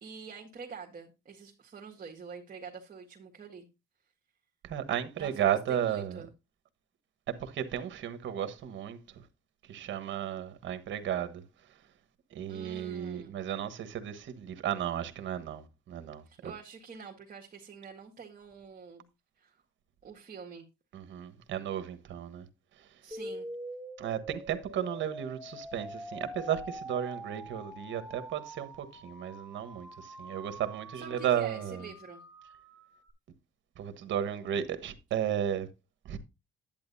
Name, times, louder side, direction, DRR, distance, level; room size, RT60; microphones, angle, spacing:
voice 1, 0.0-3.7 5.2-6.3 12.5-13.4 16.3-19.0 19.4-19.6 20.0-20.7 23.0-23.5 30.9-32.2, right 6 dB, 45° right, 1.8 m, -46 dB
voice 2, 4.6-6.2 7.4-9.0 9.7-11.4 12.3-16.5 20.9-22.4 24.0-31.8 33.8-35.7 36.0-36.2, right 10 dB, 70° right, 1.3 m, -34 dB
sound 1, 23.1-33.1, right 1 dB, 5° right, 2.5 m, -45 dB
10.5 x 9.0 x 2.7 m
cardioid pair, 90°, 20 cm